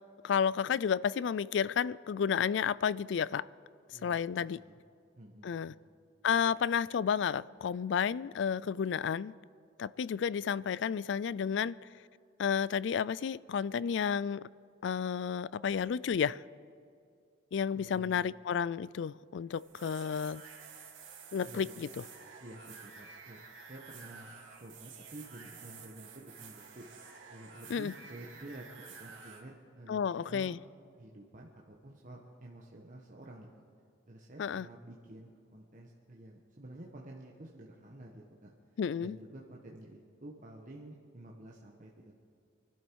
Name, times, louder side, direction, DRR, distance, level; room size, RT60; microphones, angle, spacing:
voice 1, 0.2-3.5 3.9-4.6 5.4-5.7 6.2-9.3 9.8-11.8 12.4-14.4 14.8-16.4 17.5-20.4 21.3-22.0 27.7-27.9 29.9-30.6 34.4-34.7 38.8-39.2, left 7 dB, 60° left, 20 dB, 0.3 m, -31 dB
voice 2, 3.9-4.8 5.1-5.8 17.7-18.3 21.4-21.9 22.4-24.3 24.6-26.8 27.3-28.6 29.0-30.5 31.0-33.5 34.1-38.5 39.0-42.1, right 1 dB, 40° right, -2 dB, 1.3 m, -50 dB
sound 1, 19.5-29.4, right 5 dB, 70° right, 3.1 m, -51 dB
24.5 x 12.0 x 4.7 m, 2.3 s
head